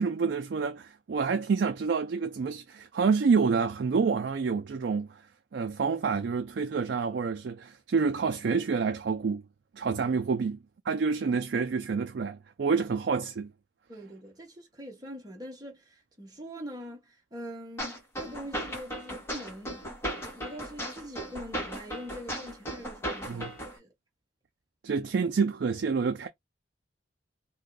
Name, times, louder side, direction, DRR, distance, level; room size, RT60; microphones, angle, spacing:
voice 1, 0.0-5.2 5.5-9.4 9.8-10.6 10.9-13.5 23.3-23.5 24.8-26.3, right 5 dB, 60° right, 0.4 m, -28 dB
voice 2, 13.9-19.9 20.2-23.9, equal, 20° right, 0.9 m, -43 dB
sound 1, 17.8-23.8, equal, 15° left, 1.3 m, -36 dB
2.7 x 2.2 x 3.8 m
head